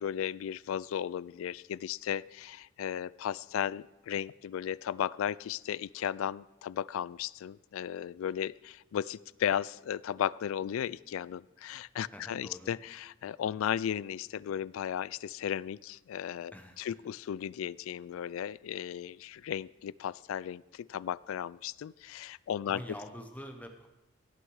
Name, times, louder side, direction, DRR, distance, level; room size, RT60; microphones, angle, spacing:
voice 1, 0.0-22.8, left 9 dB, 85° left, 22 dB, 0.3 m, -35 dB
voice 2, 12.1-12.7 16.5-16.8 22.6-23.9, equal, 10° left, 5 dB, 0.9 m, -45 dB
17.0 x 6.5 x 4.7 m, 1.0 s
head